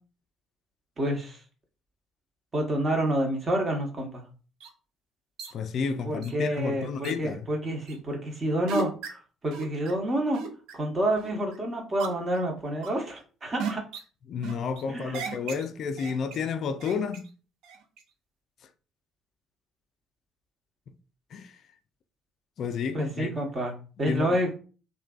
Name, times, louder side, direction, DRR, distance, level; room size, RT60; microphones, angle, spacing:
voice 1, 1.0-1.4 2.5-4.2 6.0-10.4 10.7-13.8 14.9-15.3 22.9-24.5, right 1 dB, 35° right, 1.1 m, -28 dB
sound 1, 4.6-4.7 5.4-5.5 6.2-6.3 7.0-7.2 7.9-8.0 8.7-9.1 9.5-9.9 10.3-10.7 11.2-11.6 12.0-12.4 12.8-13.2 13.6-14.0 14.4-14.8 15.1-15.6 16.0-16.5 16.8-17.3 17.6-18.0, right 5 dB, 65° right, 0.5 m, -35 dB
voice 2, 5.5-7.4 14.3-17.3 21.3-21.6 22.6-23.3 24.1-24.4, left 6 dB, 55° left, 0.3 m, -31 dB
3.1 x 2.5 x 2.3 m
hypercardioid pair, 50°, 0 cm